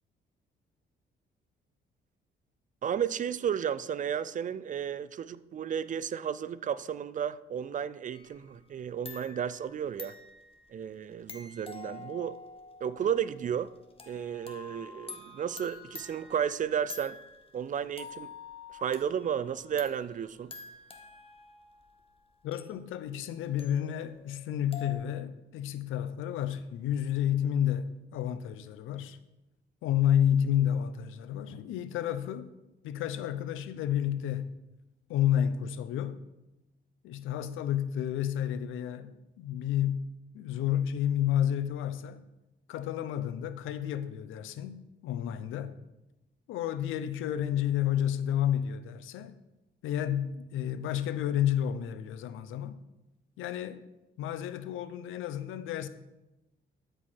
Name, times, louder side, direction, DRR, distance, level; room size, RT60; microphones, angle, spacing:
voice 1, 2.8-10.1 10.7-12.3 12.8-13.7 14.1-17.2 17.5-18.3 18.7-20.5, right 8 dB, 40° right, 0.4 m, -33 dB
sound 1, 8.1-8.8 9.0-17.6 18.0-24.9, left 4 dB, 30° left, 1.2 m, -48 dB
voice 2, 22.4-29.2 29.8-32.5 32.8-34.6 35.1-36.2 37.0-40.1 40.3-42.2 42.7-45.8 46.5-49.3 49.8-52.8 53.4-53.8 54.2-55.9, left 10 dB, 85° left, 0.6 m, -30 dB
13.0 x 4.6 x 4.4 m
cardioid pair, 90°, 20 cm